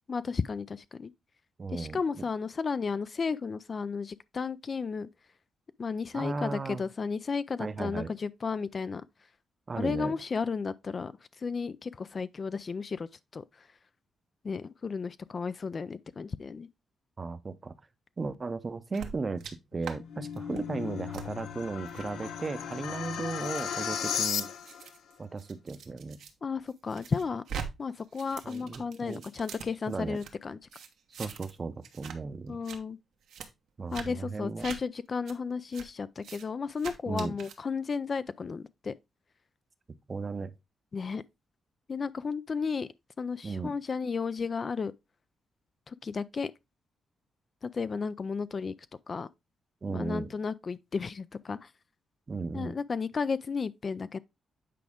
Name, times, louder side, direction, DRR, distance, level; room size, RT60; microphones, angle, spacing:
voice 1, 0.1-1.1 1.7-5.1 5.8-9.0 9.8-11.1 11.4-13.7 14.4-16.7 26.4-27.4 27.8-30.6 32.5-33.0 33.9-38.9 40.9-41.2 41.9-42.9 43.2-44.9 45.9-46.5 47.6-48.7 49.1-49.3 49.9-51.7 52.5-54.2, left 5 dB, 35° left, 0.3 m, -33 dB
voice 2, 1.6-2.0 6.1-6.8 7.6-8.1 9.7-10.1 17.2-17.7 18.2-19.4 19.7-24.5 25.2-26.2 28.4-29.2 29.9-30.2 31.2-32.6 33.8-34.7 37.1-37.4 40.1-40.5 43.4-43.7 49.8-50.3 52.3-52.7, right 4 dB, 30° right, 0.7 m, -35 dB
sound 1, 18.9-19.5 19.8-20.0 20.3-20.6 21.1-21.3 21.9-22.1 22.7-26.3 26.7-27.7 27.9-30.3 30.7-31.6 31.8-32.2 32.5-32.8 33.3-33.5 33.9-34.1 34.6-34.8 35.3-35.4 35.7-35.9 36.2-36.4 36.8-37.6, right 7 dB, 80° right, 1.1 m, -43 dB
sound 2, 19.7-24.9, left 8 dB, 90° left, 0.8 m, -35 dB
8.4 x 4.9 x 3.5 m
cardioid pair, 140°, 0 cm